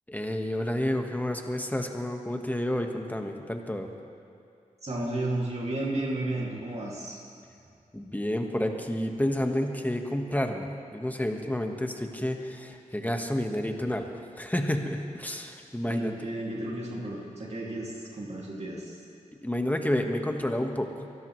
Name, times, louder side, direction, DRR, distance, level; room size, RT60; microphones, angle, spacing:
voice 1, 0.1-3.9 7.9-14.1 14.4-16.1 19.4-20.9, left 1 dB, 10° left, 4 dB, 1.5 m, -30 dB
voice 2, 4.8-7.2 15.9-18.9, right 1 dB, 50° right, -3 dB, 2.5 m, -33 dB
23.0 x 13.0 x 3.2 m, 2.5 s
cardioid pair, 45°, 14 cm